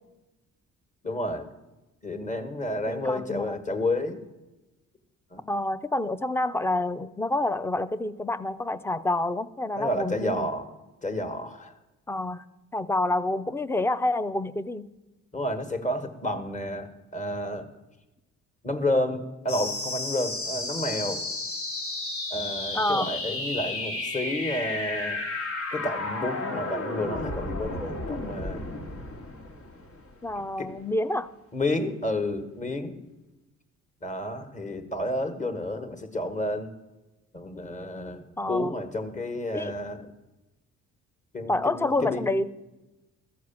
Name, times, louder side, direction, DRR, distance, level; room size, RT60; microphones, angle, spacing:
voice 1, 1.0-1.5 2.0-4.2 5.3-5.4 9.8-10.7 11.0-11.7 15.3-17.7 18.6-21.2 22.3-25.2 25.7-28.6 30.6-30.7 31.5-33.0 34.0-36.7 37.3-40.1 41.3-42.2, left 1 dB, 25° left, 8 dB, 1.3 m, -30 dB
voice 2, 2.9-3.6 5.5-10.5 12.1-12.4 12.7-14.9 22.7-23.1 30.2-31.3 38.4-38.7 39.5-39.7 41.5-42.5, left 2 dB, 10° left, 15 dB, 0.4 m, -28 dB
sound 1, 19.5-30.5, left 2 dB, 70° left, 1.5 m, -33 dB
14.0 x 4.7 x 7.1 m, 1.1 s
cardioid pair, 90°, 30 cm